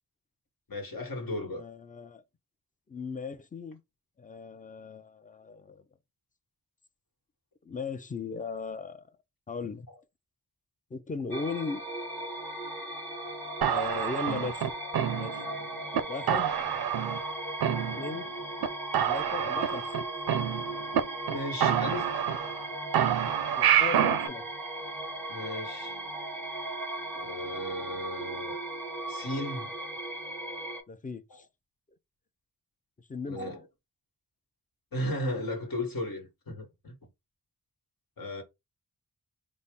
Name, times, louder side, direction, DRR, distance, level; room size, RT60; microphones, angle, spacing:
voice 1, 0.7-1.6 8.4-8.5 21.3-22.1 23.2-23.3 25.3-25.9 27.1-28.6 29.1-29.7 33.2-33.6 34.9-37.0 38.2-38.4, left 1 dB, 65° left, 1.3 m, -35 dB
voice 2, 1.5-2.2 2.9-3.8 4.2-5.8 7.7-9.1 9.5-9.9 10.9-11.8 13.7-14.6 15.1-15.4 16.1-16.5 18.0-18.3 19.0-19.9 23.6-24.4 30.9-31.5 33.1-33.6, left 4 dB, 20° left, 0.5 m, -37 dB
sound 1, 11.3-30.8, right 1 dB, 5° left, 1.1 m, -37 dB
sound 2, 13.6-15.6 15.9-16.0 16.3-17.3 17.6-18.3 18.6-18.7 18.9-21.0 21.3-21.4 21.6-22.6 22.9-24.3, right 9 dB, 90° right, 0.5 m, -27 dB
4.0 x 2.0 x 3.6 m
wide cardioid pair, 70°, 36 cm